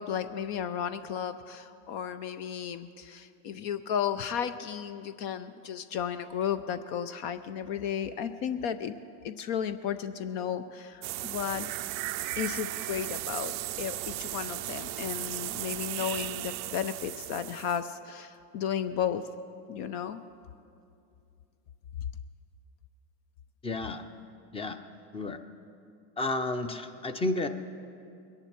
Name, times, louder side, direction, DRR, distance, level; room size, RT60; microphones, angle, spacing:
voice 1, 0.0-8.9 9.2-11.7 12.4-19.2 19.7-20.2, left 8 dB, 55° left, 11 dB, 0.6 m, -34 dB
sound 1, 11.0-17.8, right 17 dB, 35° right, 0.4 m, -36 dB
voice 2, 23.6-24.0 24.5-24.8 25.1-25.4 26.2-27.5, left 2 dB, 10° left, 9 dB, 0.5 m, -31 dB
22.5 x 10.5 x 4.4 m, 2.6 s
supercardioid pair, 115°, 49 cm